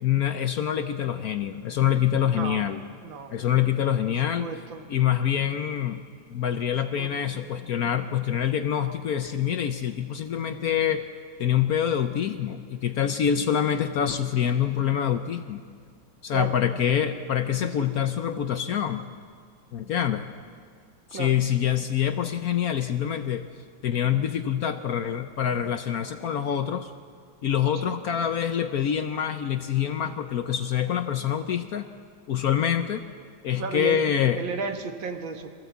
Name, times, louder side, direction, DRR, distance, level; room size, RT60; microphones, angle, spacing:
voice 1, 0.0-2.8 3.3-4.5 4.9-6.0 6.3-11.0 11.4-15.6 16.2-19.1 19.7-20.3 21.1-23.5 23.8-26.9 27.4-31.9 32.3-33.0 33.4-34.4, left 9 dB, 65° left, 9 dB, 1.0 m, -25 dB
voice 2, 2.3-2.7 3.0-3.4 4.2-4.9 7.0-7.4 16.3-16.5 17.6-17.9 21.1-21.3 27.8-28.2 33.6-34.0 34.4-35.5, right 5 dB, 80° right, 6 dB, 2.1 m, -34 dB
22.5 x 15.5 x 8.1 m, 2.1 s
omnidirectional pair, 2.1 m